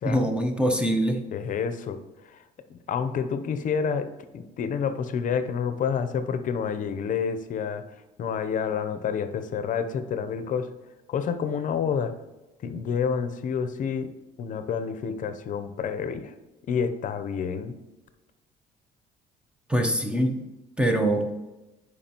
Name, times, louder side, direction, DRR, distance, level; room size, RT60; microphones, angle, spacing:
voice 1, 0.0-1.2 19.7-20.4 20.8-21.3, right 1 dB, 5° right, 4 dB, 0.8 m, -23 dB
voice 2, 1.3-2.0 2.3-2.4 2.7-7.8 8.2-10.7 11.1-12.1 12.6-14.1 14.4-16.3 16.7-17.8, left 6 dB, 50° left, 11 dB, 0.7 m, -29 dB
10.5 x 4.8 x 2.9 m, 1.0 s
cardioid pair, 110°, 17 cm